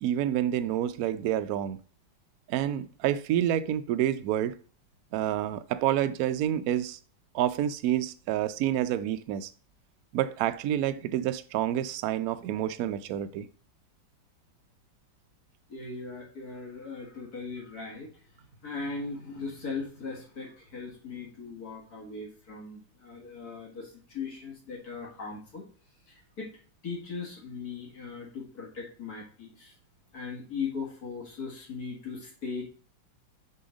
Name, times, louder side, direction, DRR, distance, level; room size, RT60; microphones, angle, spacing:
voice 1, 0.0-1.8 2.5-4.5 5.1-7.0 7.3-9.5 10.1-13.5, right 11 dB, 90° right, 0.8 m, -28 dB
voice 2, 15.7-25.7 26.1-26.5 26.8-29.7 30.1-32.6, left 4 dB, 50° left, 2.1 m, -39 dB
6.7 x 3.5 x 4.8 m
omnidirectional pair, 2.1 m